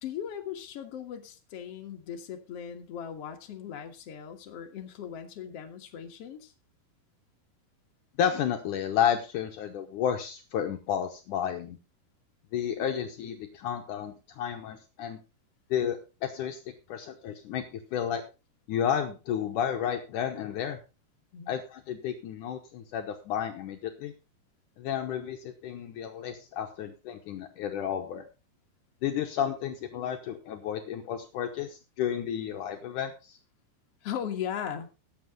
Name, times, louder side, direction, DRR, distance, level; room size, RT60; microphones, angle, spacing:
voice 1, 0.0-6.5 21.3-21.6 34.0-34.9, left 9 dB, 60° left, 3 dB, 1.6 m, -38 dB
voice 2, 8.2-11.8 12.5-15.2 15.7-16.6 16.9-18.2 18.7-20.8 21.5-24.1 24.8-28.2 29.0-33.4, left 9 dB, 85° left, 4 dB, 1.7 m, -31 dB
17.5 x 7.3 x 3.6 m, 0.30 s
omnidirectional pair, 5.0 m